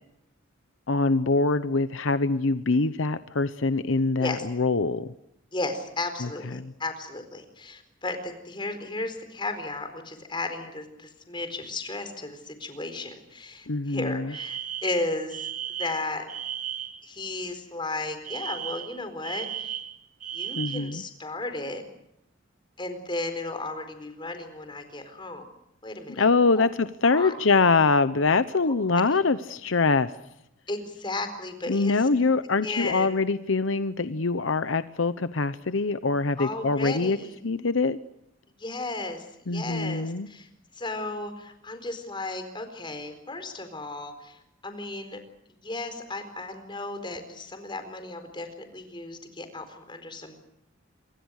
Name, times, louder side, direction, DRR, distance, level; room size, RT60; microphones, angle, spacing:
voice 1, 0.9-5.1 6.2-6.7 13.7-14.3 20.6-21.0 26.1-30.1 31.7-37.2 37.4-38.0 39.5-40.3, left 3 dB, 75° left, 13 dB, 0.9 m, -24 dB
voice 2, 5.5-15.5 15.8-16.2 17.0-19.8 20.3-21.8 22.8-25.5 25.8-26.2 26.5-26.7 27.0-27.3 28.7-28.8 30.7-32.1 32.6-33.2 36.4-37.4 38.6-39.3 39.5-40.5 40.8-45.2 45.6-50.3, left 2 dB, 25° left, 8 dB, 4.3 m, -34 dB
Alarm, 14.3-17.0 18.2-21.0, right 10 dB, 40° right, 1.7 m, -35 dB
27.0 x 24.0 x 6.5 m, 0.81 s
head